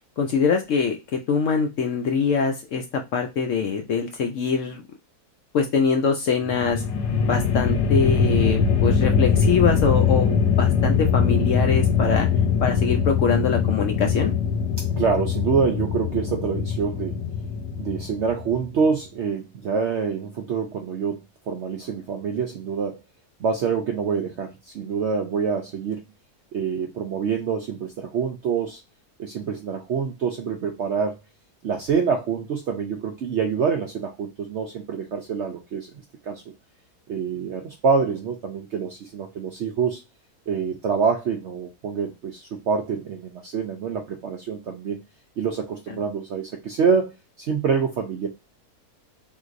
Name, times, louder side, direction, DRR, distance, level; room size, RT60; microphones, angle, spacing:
voice 1, 0.2-4.8 5.5-6.8 7.2-12.3 12.6-14.3, left 5 dB, 70° left, 4 dB, 0.8 m, -23 dB
sound 1, 6.4-18.7, left 6 dB, 85° left, 1.2 m, -22 dB
voice 2, 15.0-17.2 17.8-23.0 23.4-26.0 26.5-28.8 29.2-31.2 31.6-35.9 36.3-36.4 37.1-40.0 40.5-45.0 45.4-48.3, right 6 dB, 70° right, 3 dB, 0.6 m, -26 dB
3.8 x 2.6 x 2.4 m, 0.24 s
omnidirectional pair, 1.7 m